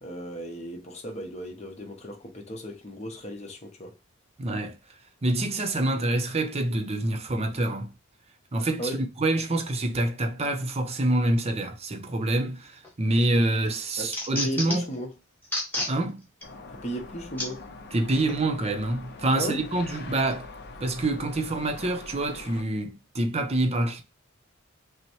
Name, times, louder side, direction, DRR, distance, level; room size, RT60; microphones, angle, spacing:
voice 1, 0.0-3.9 8.8-9.0 14.0-15.1 16.7-17.6 19.3-19.6, equal, 30° left, 0.9 m, -35 dB
voice 2, 4.4-4.8 5.2-7.9 8.5-14.9 15.9-16.2 17.9-20.5 20.8-24.0, right 2 dB, 30° right, 0.6 m, -26 dB
sound 1, 12.8-13.3 13.7-14.9 15.4-15.9 16.4-16.5 17.4-17.5 18.3-18.4, left 1 dB, 10° left, 1.2 m, -31 dB
sound 2, 16.4-22.6, left 3 dB, 50° left, 0.6 m, -43 dB
5.8 x 2.1 x 3.0 m
head